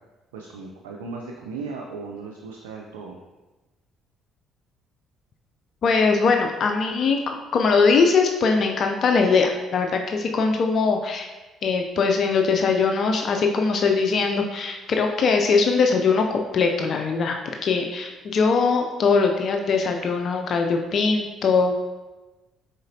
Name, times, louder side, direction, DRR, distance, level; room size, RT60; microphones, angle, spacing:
voice 1, 0.3-3.2, right 4 dB, 90° right, 0 dB, 0.4 m, -36 dB
voice 2, 5.8-11.3 11.6-21.8, left 4 dB, 55° left, 3 dB, 0.4 m, -21 dB
5.0 x 3.9 x 2.6 m, 1.1 s
hypercardioid pair, 55°, 0 cm